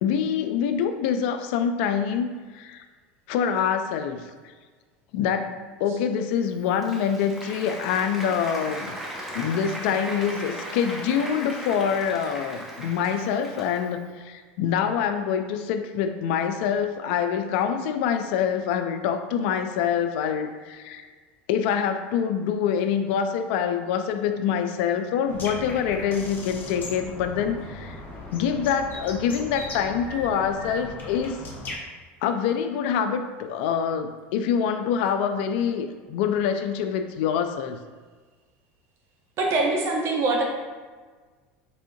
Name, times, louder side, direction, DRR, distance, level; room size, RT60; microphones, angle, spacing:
voice 1, 0.0-2.8 3.3-4.2 5.1-8.9 9.3-21.1 21.5-28.0 28.3-31.4 32.2-37.8, left 7 dB, 70° left, 8 dB, 0.4 m, -25 dB
Applause, 6.4-14.1, equal, 5° right, 0.9 m, -37 dB
sound 1, 25.3-31.8, left 2 dB, 30° left, 0.9 m, -38 dB
voice 2, 39.4-40.4, right 3 dB, 50° right, -1 dB, 1.1 m, -23 dB
4.2 x 3.5 x 2.6 m, 1.4 s
supercardioid pair, 100°, 6 cm